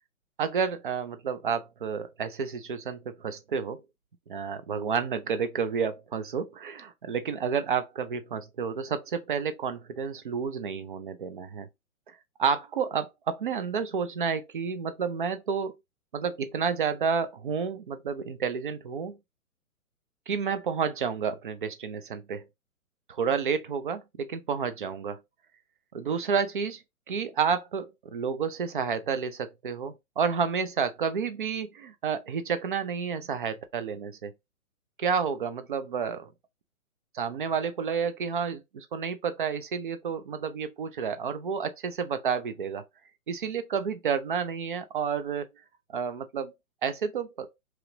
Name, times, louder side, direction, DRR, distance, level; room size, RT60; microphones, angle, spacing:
voice 1, 0.4-3.8 4.3-11.7 12.4-15.8 16.1-19.2 20.3-22.4 23.1-25.2 25.9-26.8 27.1-34.3 35.0-36.3 37.1-42.8 43.3-45.5 45.9-46.5 46.8-47.5, right 6 dB, 40° right, 0.4 m, -30 dB
2.9 x 2.4 x 3.1 m
hypercardioid pair, 140°, 43 cm